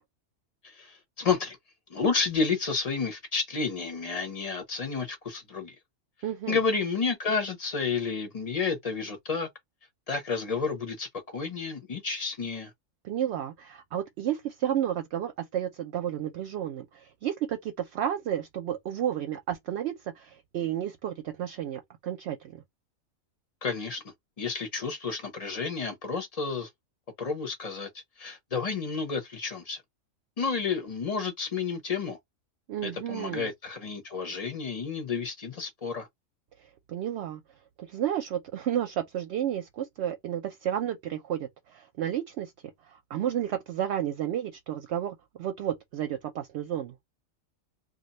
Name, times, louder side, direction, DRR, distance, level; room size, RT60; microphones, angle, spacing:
voice 1, 0.6-1.6 1.9-5.7 6.5-9.5 10.1-12.7 23.6-24.0 24.4-26.7 27.2-27.9 28.2-29.8 30.4-32.2 32.8-36.1, left 5 dB, 35° left, 0.6 m, -31 dB
voice 2, 6.2-6.6 13.0-22.6 32.7-33.5 36.9-37.4 37.8-42.5 43.1-46.9, right 10 dB, 65° right, 0.7 m, -32 dB
2.6 x 2.2 x 3.9 m
omnidirectional pair, 1.4 m